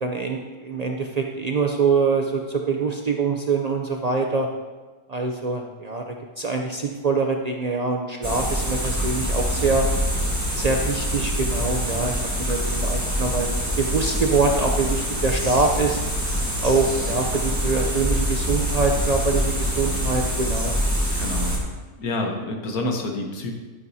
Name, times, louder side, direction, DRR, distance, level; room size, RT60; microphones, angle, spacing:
voice 1, 0.0-4.5 5.1-9.9 10.5-13.5 13.8-16.0 16.6-20.7, right 4 dB, 70° right, 2 dB, 0.3 m, -24 dB
sound 1, 8.2-21.6, equal, 10° right, 1.6 m, -25 dB
voice 2, 21.1-21.6 22.0-23.5, left 2 dB, 80° left, 2 dB, 1.7 m, -28 dB
11.0 x 9.3 x 2.8 m, 1.3 s
omnidirectional pair, 1.6 m